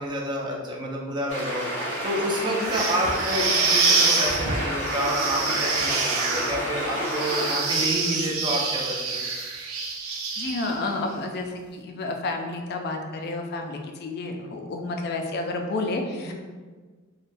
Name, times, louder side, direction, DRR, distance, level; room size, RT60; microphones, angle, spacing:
voice 1, 0.0-9.2 16.3-16.4, equal, 20° right, -2 dB, 0.4 m, -29 dB
sound 1, 1.3-7.5, equal, 70° right, 1.1 m, -30 dB
voice 2, 2.4-2.7 10.1-16.3, left 2 dB, 50° left, 3 dB, 0.3 m, -31 dB
sound 2, 2.6-10.9, right 4 dB, 90° right, 0.4 m, -26 dB
3.3 x 2.2 x 2.6 m, 1.4 s
head